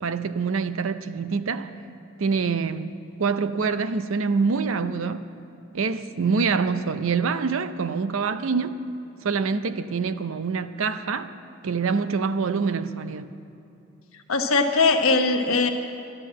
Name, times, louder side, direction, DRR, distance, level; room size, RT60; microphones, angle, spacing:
voice 1, 0.0-1.7 2.2-5.2 5.7-8.7 9.2-11.3 11.6-13.3, right 5 dB, 75° right, 0.6 m, -25 dB
voice 2, 14.3-15.7, left 3 dB, 85° left, 1.1 m, -20 dB
12.0 x 11.0 x 7.4 m
head